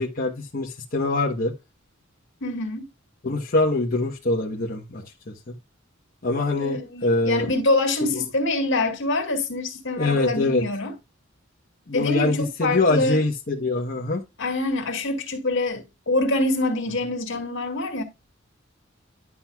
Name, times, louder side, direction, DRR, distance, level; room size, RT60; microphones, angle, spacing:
voice 1, 0.0-1.5 3.2-5.5 6.2-7.5 8.1-8.2 9.9-10.6 11.9-14.2, left 2 dB, 45° left, 1.1 m, -24 dB
voice 2, 2.4-2.9 6.5-10.9 11.9-13.2 14.4-18.0, left 2 dB, 70° left, 2.2 m, -25 dB
11.0 x 5.9 x 2.3 m
head